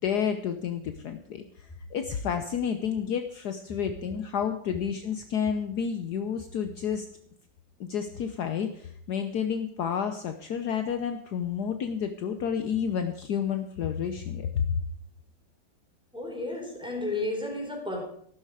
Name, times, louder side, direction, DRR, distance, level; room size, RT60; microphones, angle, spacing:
voice 1, 0.0-7.1 7.8-14.8, left 7 dB, 65° left, 7 dB, 1.3 m, -30 dB
voice 2, 16.1-18.0, left 2 dB, ahead, -1 dB, 4.0 m, -32 dB
14.5 x 12.0 x 4.9 m, 0.64 s
omnidirectional pair, 2.0 m